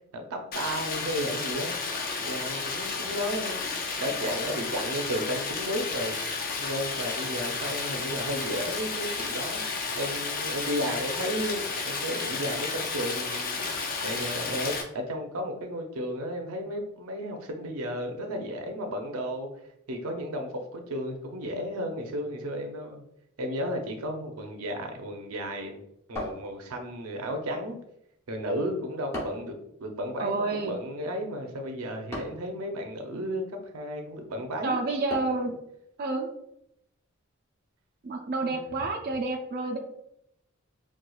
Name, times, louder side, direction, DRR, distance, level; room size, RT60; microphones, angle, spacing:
voice 1, 0.1-1.7 2.2-3.7 4.0-6.2 6.6-9.6 9.9-13.6 14.0-19.5 19.9-23.0 23.4-25.8 26.1-27.8 28.3-34.8 38.4-38.6, equal, 90° right, 4 dB, 0.6 m, -33 dB
Stream, 0.5-14.8, left 4 dB, 40° left, 0.5 m, -32 dB
sound 1, 26.2-27.0 29.1-29.6 32.1-32.5 35.1-35.5, left 1 dB, 15° left, 0.9 m, -37 dB
voice 2, 30.2-30.8 34.6-35.6 36.0-36.3 38.0-39.8, right 3 dB, 45° right, 2 dB, 0.4 m, -29 dB
4.4 x 2.3 x 2.3 m, 0.77 s
head